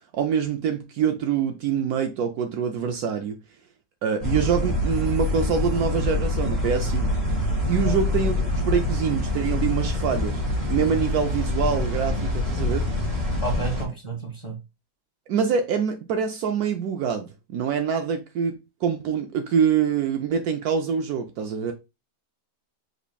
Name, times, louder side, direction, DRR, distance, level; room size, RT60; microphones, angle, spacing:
voice 1, 0.1-3.4 4.0-7.1 7.7-10.4 10.7-12.9 15.3-18.5 18.8-21.7, right 7 dB, 70° right, 1.0 m, -25 dB
sound 1, 4.2-13.8, left 2 dB, 25° right, 1.2 m, -25 dB
voice 2, 13.4-14.6, right 2 dB, 20° left, 1.0 m, -30 dB
5.0 x 3.3 x 2.2 m
omnidirectional pair, 1.8 m